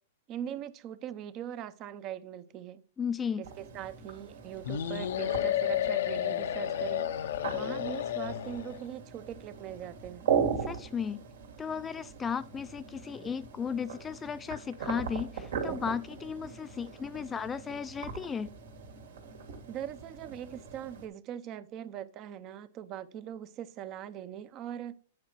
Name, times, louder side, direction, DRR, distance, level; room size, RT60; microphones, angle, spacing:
voice 1, 0.3-2.8 3.4-10.3 19.7-24.9, right 10 dB, 35° right, 0.7 m, -41 dB
voice 2, 3.0-3.4 10.6-11.2 11.6-18.5, left 6 dB, 15° left, 0.3 m, -35 dB
sound 1, 3.4-21.1, right 7 dB, 80° right, 2.4 m, -39 dB
sound 2, 4.6-8.8, left 11 dB, 70° left, 0.7 m, -31 dB
9.5 x 5.0 x 4.6 m
hypercardioid pair, 130°, 0 cm